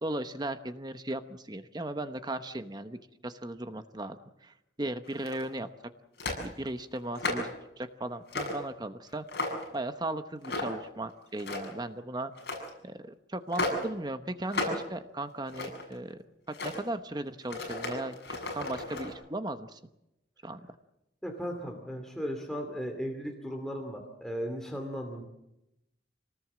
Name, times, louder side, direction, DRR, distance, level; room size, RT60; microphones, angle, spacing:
voice 1, 0.0-5.7 6.4-9.2 9.7-12.3 12.8-16.2 16.5-18.2 18.5-19.8 20.4-20.7, right 1 dB, 20° right, 9 dB, 1.0 m, -37 dB
sound 1, 5.1-5.6 6.2-6.5 7.0-7.6 8.3-8.6 9.1-9.8 10.4-10.9 11.3-11.8 12.4-12.7 13.5-13.9 14.5-14.8 15.2-15.9 16.5-16.8 17.4-19.1, left 2 dB, 60° left, 7.2 m, -34 dB
voice 2, 21.2-25.2, equal, ahead, 2 dB, 2.5 m, -36 dB
26.5 x 19.0 x 7.5 m, 0.87 s
head